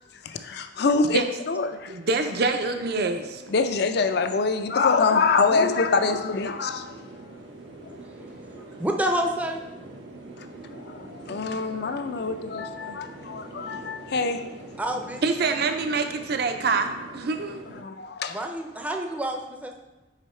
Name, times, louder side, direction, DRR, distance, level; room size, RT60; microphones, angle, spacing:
voice 1, 0.2-2.0 3.5-6.9 7.8-7.9 10.4-10.5 10.7-14.4 17.8-18.4, left 4 dB, 60° left, 0.5 m, -25 dB
voice 2, 1.9-3.4 15.2-17.6, right 4 dB, 60° right, 0.6 m, -25 dB
sound 1, 2.3-17.8, right 2 dB, 85° right, 1.0 m, -44 dB
voice 3, 8.8-9.6 14.8-15.2 18.3-19.7, equal, 10° right, 0.5 m, -28 dB
5.4 x 5.0 x 4.4 m
head